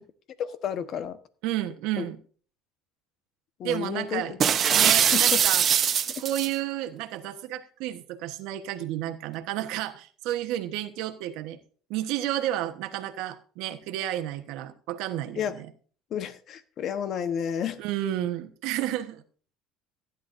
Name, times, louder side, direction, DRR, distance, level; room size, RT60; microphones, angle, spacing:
voice 1, 0.4-1.2 2.0-2.1 3.6-4.4 4.6-4.8 5.1-5.2 15.4-15.6 16.1-17.8, left 8 dB, 50° left, 10 dB, 1.1 m, -31 dB
voice 2, 1.4-2.2 3.6-4.3 4.7-5.7 6.2-11.6 11.9-15.7 17.8-19.2, right 13 dB, 75° right, 7 dB, 1.2 m, -31 dB
sound 1, 4.4-6.5, right 8 dB, 40° right, 0.9 m, -21 dB
15.5 x 10.5 x 2.7 m, 0.42 s
supercardioid pair, 115°, 0 cm